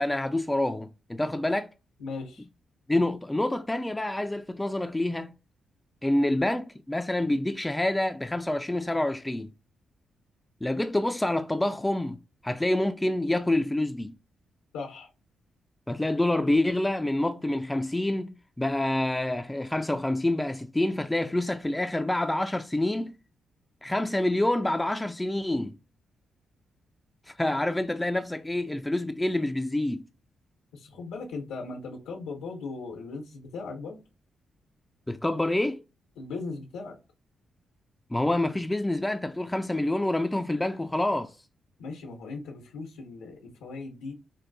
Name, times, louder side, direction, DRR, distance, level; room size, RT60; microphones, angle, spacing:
voice 1, 0.0-1.7 2.9-5.3 6.0-9.5 10.6-12.2 12.4-14.1 15.9-23.1 23.8-25.7 27.3-30.1 35.1-35.8 38.1-41.3, left 1 dB, 15° left, 0.3 m, -27 dB
voice 2, 2.0-2.4 14.7-15.1 30.7-34.0 36.2-37.0 41.8-44.2, left 3 dB, 90° left, 0.8 m, -38 dB
4.6 x 2.2 x 2.5 m
hypercardioid pair, 45°, 0 cm